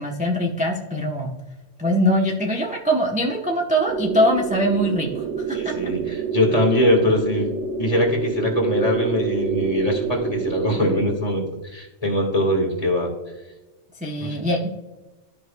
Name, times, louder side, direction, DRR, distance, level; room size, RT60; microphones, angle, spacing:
voice 1, 0.0-1.3 1.8-5.6 14.0-14.7, equal, 10° right, -1 dB, 0.7 m, -22 dB
sound 1, 3.9-11.2, right 6 dB, 70° right, 0.8 m, -27 dB
voice 2, 5.5-7.5 7.8-13.1 14.2-14.4, left 1 dB, 30° left, 0 dB, 1.7 m, -22 dB
13.5 x 5.1 x 2.2 m, 1.1 s
omnidirectional pair, 1.2 m